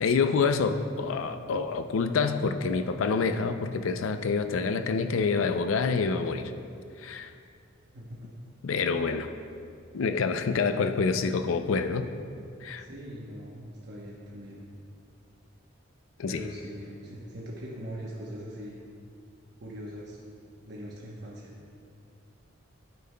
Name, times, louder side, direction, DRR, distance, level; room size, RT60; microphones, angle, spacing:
voice 1, 0.0-6.5 7.0-7.3 8.6-9.3 9.9-12.1 12.6-12.8 16.2-16.5, left 5 dB, 75° left, 9 dB, 0.4 m, -27 dB
voice 2, 0.6-0.9 7.9-8.3 12.8-14.6 16.3-18.8 19.6-20.2 20.7-21.5, equal, 55° right, -4 dB, 0.9 m, -41 dB
12.0 x 9.2 x 2.2 m, 2.4 s
head